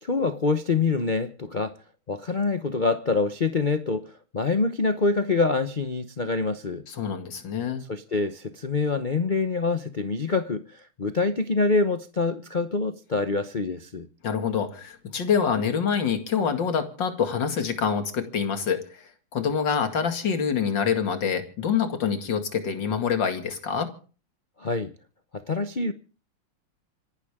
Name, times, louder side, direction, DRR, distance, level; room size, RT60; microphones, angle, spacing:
voice 1, 0.0-1.7 2.1-6.8 7.9-14.1 24.6-24.9 25.3-25.9, left 3 dB, 75° left, 0.4 m, -25 dB
voice 2, 6.9-7.8 14.2-23.9, left 7 dB, 55° left, 2.9 m, -26 dB
26.5 x 12.0 x 3.6 m
omnidirectional pair, 2.4 m